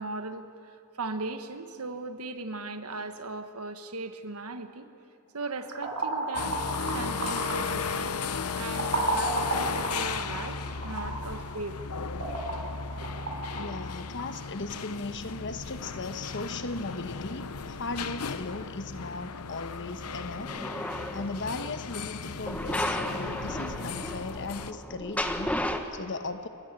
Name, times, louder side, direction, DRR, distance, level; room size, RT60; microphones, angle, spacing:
voice 1, 0.0-4.9 5.3-10.6 10.8-11.8, right 3 dB, 85° right, 9 dB, 1.4 m, -38 dB
sound 1, 5.4-14.4, right 2 dB, 65° right, 4.5 m, -34 dB
sound 2, 6.4-24.7, left 5 dB, 85° left, 0.8 m, -36 dB
voice 2, 13.5-20.5 21.1-26.5, left 3 dB, 55° left, 10 dB, 1.1 m, -37 dB
sound 3, 20.2-21.6 22.4-25.8, left 1 dB, 5° left, 1.2 m, -33 dB
29.5 x 13.5 x 9.0 m, 2.8 s
head